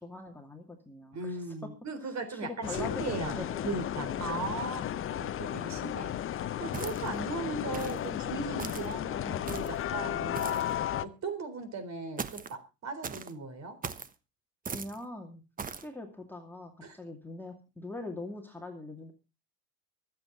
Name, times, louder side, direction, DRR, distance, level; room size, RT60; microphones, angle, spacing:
voice 1, 0.0-1.4 2.0-3.7 4.1-4.3 14.6-15.4 15.7-19.1, left 2 dB, 5° left, 1 dB, 2.4 m, -42 dB
voice 2, 1.1-10.6 11.0-13.8 16.8-17.0, right 3 dB, 35° right, 10 dB, 3.8 m, -38 dB
sound 1, 2.6-11.1, left 11 dB, 25° left, 0.8 m, -34 dB
sound 2, 6.7-7.2 7.7-8.0 8.6-8.9 9.5-9.8 10.3-10.7 12.2-12.5 13.0-13.3 13.8-14.1 14.7-15.0 15.6-15.9, right 5 dB, 15° right, 1.1 m, -39 dB
24.0 x 8.2 x 3.9 m, 0.30 s
hypercardioid pair, 90°, 49 cm